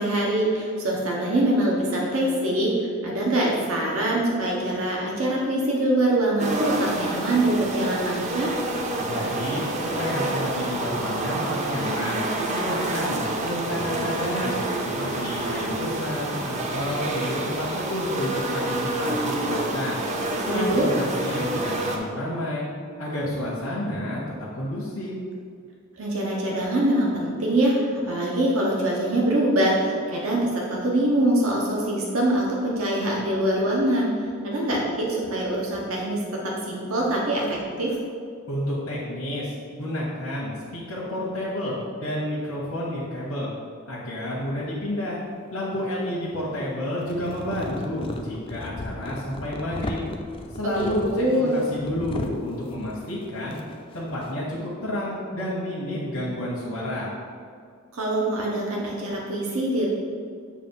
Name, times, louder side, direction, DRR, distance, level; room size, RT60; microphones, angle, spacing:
voice 1, 0.0-8.6 20.5-20.9 26.0-38.0 50.6-51.5 57.9-59.9, right 1 dB, 80° right, -3 dB, 1.0 m, -24 dB
sound 1, 6.4-22.0, right 2 dB, 35° right, 0.5 m, -28 dB
voice 2, 9.0-14.6 14.8-20.0 20.5-22.6 23.0-24.2 24.5-25.1 38.5-43.5 43.9-45.2 45.5-50.0 50.5-53.6 53.9-57.1, left 1 dB, 90° left, -6 dB, 1.1 m, -30 dB
sound 2, 45.2-46.1 46.8-54.6, left 2 dB, 25° left, 0.3 m, -37 dB
7.4 x 2.5 x 5.4 m, 2.2 s
head